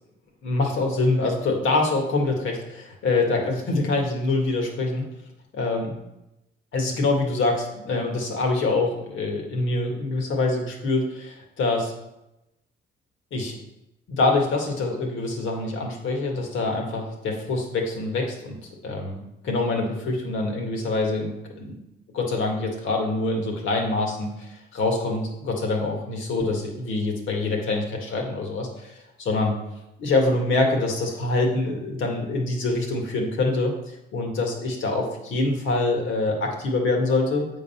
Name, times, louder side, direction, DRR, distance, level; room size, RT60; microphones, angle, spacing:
voice 1, 0.4-5.0 5.5-5.9 6.7-11.9 13.3-13.6 14.1-21.8 22.1-29.6 30.0-37.5, left 2 dB, 80° left, 1 dB, 1.8 m, -25 dB
8.2 x 3.9 x 5.7 m, 0.90 s
cardioid pair, 90°, 20 cm